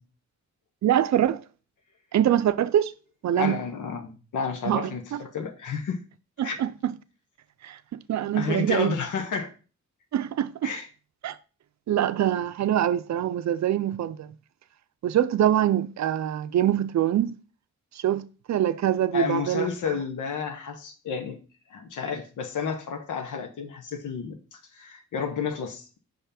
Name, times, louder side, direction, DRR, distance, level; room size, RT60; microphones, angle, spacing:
voice 1, 0.8-1.4 2.1-2.9 3.2-3.6 4.7-5.2 6.4-6.9 7.6-8.9 10.1-10.7 11.2-11.4 11.9-14.3 15.0-17.3 17.9-19.7, right 11 dB, 65° right, 0.5 m, -24 dB
voice 2, 3.3-6.0 6.4-6.6 8.3-9.5 10.6-10.9 19.1-21.4 21.7-26.0, left 5 dB, 90° left, 1.0 m, -31 dB
5.6 x 3.4 x 5.7 m
cardioid pair, 90°, 30 cm